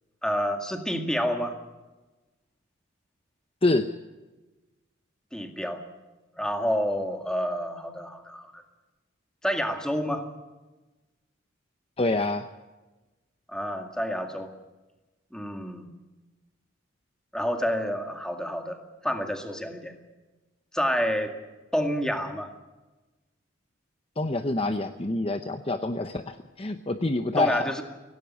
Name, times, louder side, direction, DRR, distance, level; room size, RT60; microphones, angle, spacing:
voice 1, 0.2-1.6 5.3-5.8 6.4-8.6 9.4-10.2 13.5-14.5 15.3-15.9 17.3-18.8 19.0-19.9 20.7-21.3 21.7-22.5 27.4-27.8, equal, 5° left, 5 dB, 2.1 m, -28 dB
voice 2, 12.0-12.5 24.2-27.6, left 2 dB, 30° left, 8 dB, 0.8 m, -26 dB
17.5 x 17.5 x 9.5 m, 1.1 s
head